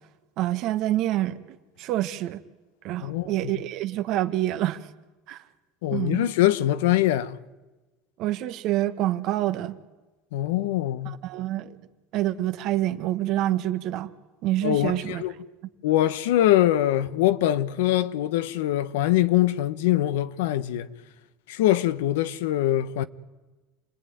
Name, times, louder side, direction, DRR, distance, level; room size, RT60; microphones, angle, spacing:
voice 1, 0.4-1.4 1.8-2.4 2.8-4.8 5.3-5.4 5.9-6.3 8.2-9.8 11.0-11.7 12.1-14.1 14.4-15.2, right 14 dB, 55° right, 1.5 m, -27 dB
voice 2, 3.0-3.5 5.8-7.4 10.3-11.2 14.6-15.3 15.8-20.9 21.5-23.0, left 13 dB, 90° left, 1.1 m, -23 dB
28.5 x 20.5 x 9.4 m
supercardioid pair, 130°, 0 cm